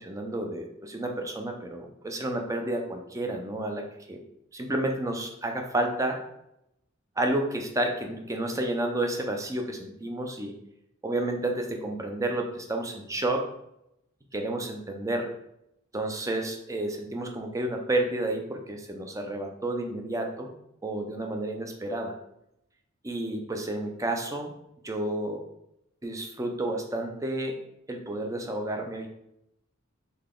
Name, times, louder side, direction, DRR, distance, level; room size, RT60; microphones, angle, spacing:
voice 1, 0.1-4.2 4.5-6.2 7.2-10.5 11.0-13.5 14.3-15.3 15.9-20.5 20.8-22.1 23.0-24.5 24.8-25.4 26.0-27.6 27.9-29.1, right 1 dB, 15° right, 3 dB, 0.5 m, -30 dB
4.0 x 3.2 x 3.6 m, 0.80 s
head